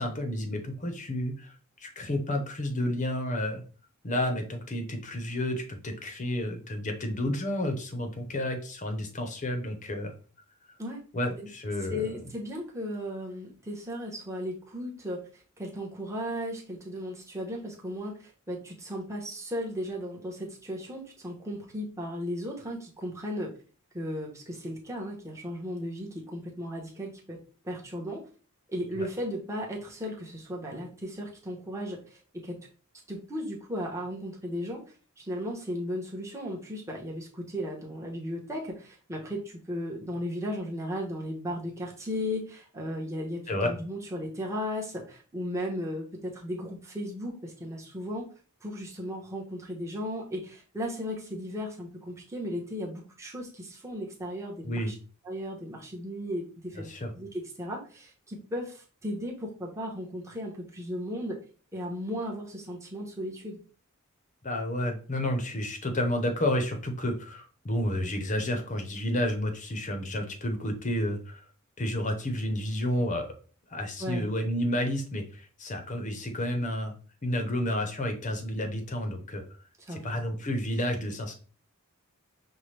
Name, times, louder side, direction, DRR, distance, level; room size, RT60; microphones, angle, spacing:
voice 1, 0.0-1.5 1.8-3.6 4.0-10.1 11.1-12.1 29.0-29.1 43.5-43.7 54.6-54.9 56.9-57.1 64.4-71.4 71.8-73.3 73.7-76.9 77.2-79.4 79.9-81.3, left 1 dB, 35° left, 4 dB, 0.7 m, -30 dB
voice 2, 11.9-23.5 23.9-27.4 27.6-28.2 28.7-32.6 33.1-34.8 35.2-48.2 48.6-54.9 55.2-61.4 61.7-63.6 74.0-74.3 79.9-80.1, equal, 15° right, -2 dB, 0.9 m, -36 dB
5.6 x 2.2 x 3.2 m, 0.39 s
head